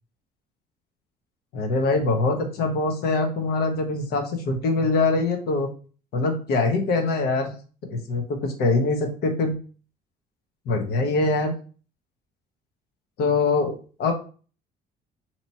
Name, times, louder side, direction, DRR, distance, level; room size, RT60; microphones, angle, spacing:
voice 1, 1.5-5.7 6.1-7.5 7.9-9.6 10.7-11.5 13.2-14.1, left 3 dB, 70° left, 4 dB, 1.0 m, -23 dB
3.0 x 2.9 x 4.1 m, 0.38 s
cardioid pair, 110°, 17 cm